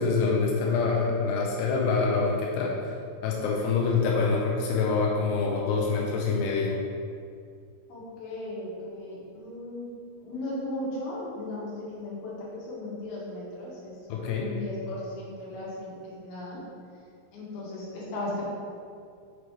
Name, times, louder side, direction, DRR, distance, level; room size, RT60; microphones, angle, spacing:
voice 1, 0.0-2.7 3.2-6.8 14.1-14.5, left 4 dB, 85° left, -2 dB, 2.4 m, -25 dB
voice 2, 7.9-9.9 10.2-13.9 14.3-16.6 17.3-18.4, left 1 dB, 60° left, -7 dB, 3.0 m, -36 dB
6.9 x 6.2 x 3.2 m, 2.3 s
omnidirectional pair, 5.5 m